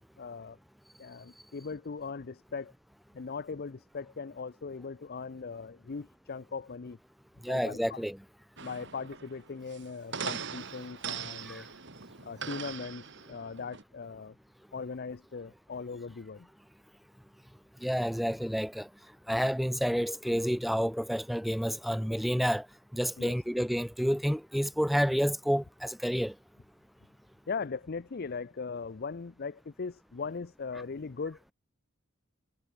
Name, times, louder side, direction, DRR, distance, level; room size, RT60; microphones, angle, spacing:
voice 1, 0.2-0.6 1.0-2.7 3.1-7.0 7.5-8.0 8.6-11.7 12.2-14.4 14.7-16.5 23.2-23.4 27.5-31.4, left 5 dB, 50° left, 0.5 m, -39 dB
voice 2, 7.4-8.2 11.5-11.6 17.8-18.9 19.3-22.7 22.9-26.3, equal, ahead, 0.7 m, -29 dB
sound 1, 8.6-13.8, right 6 dB, 60° right, 2.8 m, -41 dB
head